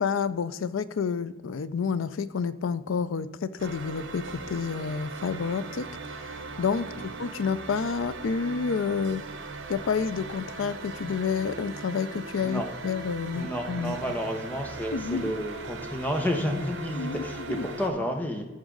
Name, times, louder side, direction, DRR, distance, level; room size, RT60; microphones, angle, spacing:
voice 1, 0.0-5.9 6.6-9.2 9.7-14.0 14.9-15.3 16.9-17.7, left 5 dB, 90° left, 15 dB, 0.4 m, -29 dB
sound 1, 3.6-17.9, right 3 dB, 80° right, 1.0 m, -39 dB
voice 2, 13.3-18.4, equal, 10° left, 3 dB, 0.9 m, -31 dB
14.0 x 4.9 x 3.9 m, 1.2 s
head